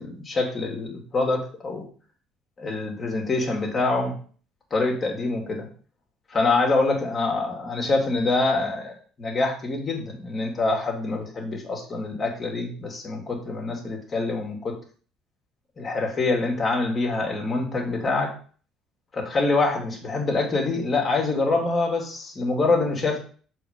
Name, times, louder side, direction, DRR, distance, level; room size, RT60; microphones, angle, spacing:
voice 1, 0.0-1.8 2.6-4.1 4.7-5.7 6.3-14.8 15.8-18.3 19.1-23.2, left 3 dB, 35° left, 0 dB, 2.5 m, -25 dB
7.1 x 4.4 x 5.3 m, 0.41 s
figure-of-eight pair, 55°, 0 cm